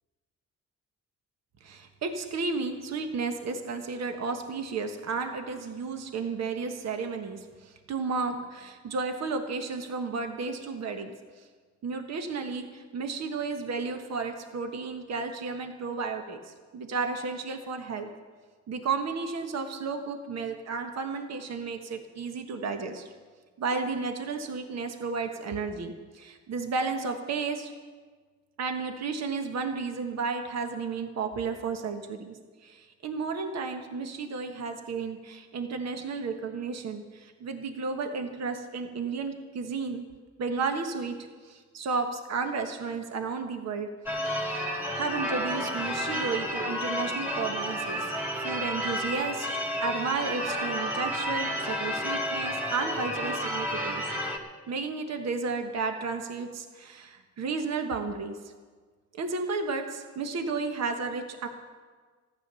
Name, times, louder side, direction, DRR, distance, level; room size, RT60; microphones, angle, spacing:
voice 1, 1.6-11.5 11.8-18.1 18.7-23.1 23.6-27.7 28.6-40.0 40.4-41.2 41.4-43.9 44.9-48.1 48.4-54.0 54.7-58.4 59.2-61.5, right 4 dB, 60° right, 5 dB, 1.4 m, -33 dB
Church bell / Car / Alarm, 44.1-54.4, equal, 5° right, 2.2 m, -31 dB
14.5 x 10.5 x 6.9 m, 1.5 s
cardioid pair, 90°, 30 cm